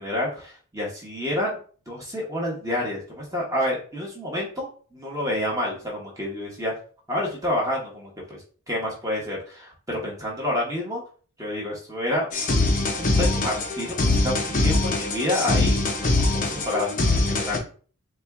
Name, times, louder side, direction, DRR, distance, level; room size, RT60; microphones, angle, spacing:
voice 1, 0.0-1.6 1.9-6.7 7.1-8.4 8.7-11.0 11.4-12.4 13.0-17.6, left 1 dB, 15° right, -3 dB, 1.0 m, -29 dB
sound 1, 12.3-17.6, left 2 dB, 35° left, 0.6 m, -23 dB
4.2 x 2.3 x 3.5 m, 0.41 s
head